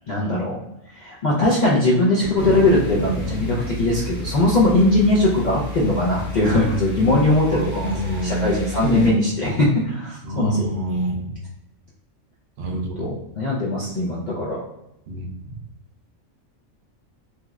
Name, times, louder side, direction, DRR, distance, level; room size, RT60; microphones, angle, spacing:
voice 1, 0.1-0.6 0.9-7.9 8.2-10.6 13.0-14.6, left 2 dB, 55° left, -6 dB, 0.5 m, -20 dB
sound 1, 2.3-9.1, left 1 dB, 70° left, 1.2 m, -31 dB
voice 2, 7.5-8.5 8.8-9.1 10.2-11.3 12.6-13.1 15.1-15.5, right 2 dB, 60° right, 2 dB, 0.8 m, -26 dB
3.0 x 2.9 x 2.3 m, 0.85 s
omnidirectional pair, 1.4 m